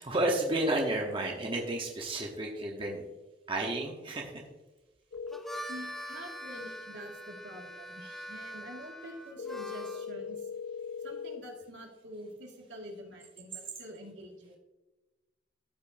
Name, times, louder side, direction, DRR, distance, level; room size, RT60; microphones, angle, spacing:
voice 1, 0.0-3.0 3.5-4.4 8.0-8.2, right 1 dB, 30° right, 0 dB, 1.0 m, -31 dB
sound 1, 5.1-5.4 9.4-11.4, left 6 dB, 65° left, 0.8 m, -39 dB
Harmonica, 5.2-10.1, equal, ahead, 0.5 m, -43 dB
voice 2, 5.7-10.5 11.0-14.6, equal, 80° right, 0 dB, 1.9 m, -47 dB
13.5 x 5.3 x 2.6 m, 1.1 s
head